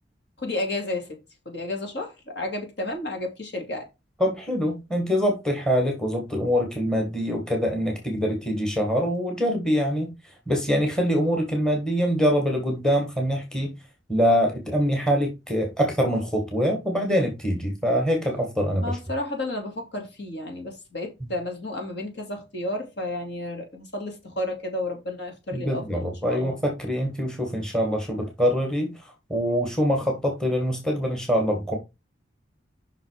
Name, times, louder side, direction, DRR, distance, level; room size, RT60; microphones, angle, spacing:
voice 1, 0.4-1.2 1.5-3.9 18.8-26.6, left 1 dB, 65° left, 2.5 m, -32 dB
voice 2, 4.2-10.1 10.5-13.7 14.1-19.0 25.5-28.9 29.3-31.8, equal, 5° left, 1.6 m, -24 dB
5.7 x 5.5 x 4.7 m
head